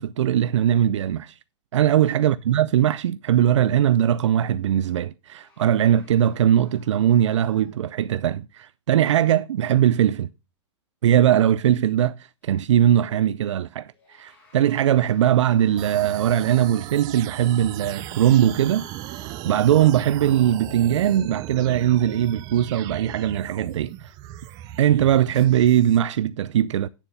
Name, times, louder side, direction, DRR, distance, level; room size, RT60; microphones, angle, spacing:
voice 1, 0.0-1.4 1.7-10.3 11.0-24.1 24.8-26.9, right 11 dB, 85° right, 0.5 m, -20 dB
sound 1, 5.4-8.2 12.4-12.5 13.8-16.5 17.6-20.1, left 2 dB, 10° left, 4.9 m, -56 dB
sound 2, 15.8-26.0, right 13 dB, 25° right, 0.5 m, -37 dB
9.0 x 7.2 x 5.4 m
hypercardioid pair, 155°, 15 cm